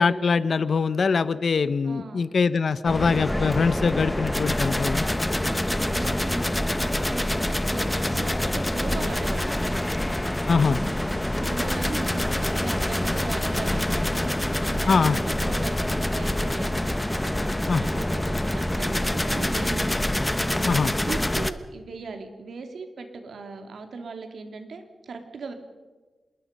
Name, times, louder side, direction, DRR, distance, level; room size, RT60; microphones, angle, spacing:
voice 1, 0.0-5.1 10.5-10.8 14.9-15.2 17.7-17.8 20.6-20.9, left 5 dB, 60° left, 14 dB, 0.9 m, -23 dB
voice 2, 1.8-2.3 5.3-9.9 10.9-25.5, right 4 dB, 80° right, 5 dB, 3.2 m, -39 dB
sound 1, 2.9-21.5, left 1 dB, 10° left, 1.0 m, -26 dB
26.5 x 21.0 x 5.4 m, 1.3 s
wide cardioid pair, 105°, 0 cm